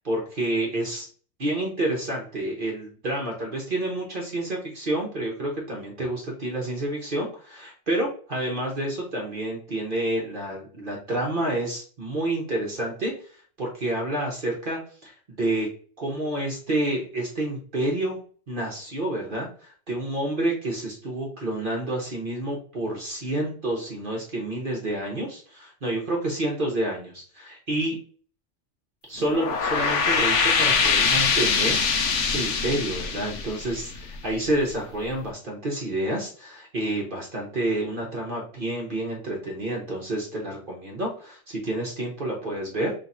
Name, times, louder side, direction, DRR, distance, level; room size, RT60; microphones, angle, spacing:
voice 1, 0.0-1.1 1.4-15.7 16.0-18.2 18.5-28.0 29.1-42.9, right 1 dB, 45° right, -2 dB, 1.2 m, -29 dB
sound 1, 29.2-34.5, left 5 dB, 80° left, 1.1 m, -23 dB
3.3 x 3.0 x 4.1 m, 0.43 s
omnidirectional pair, 1.2 m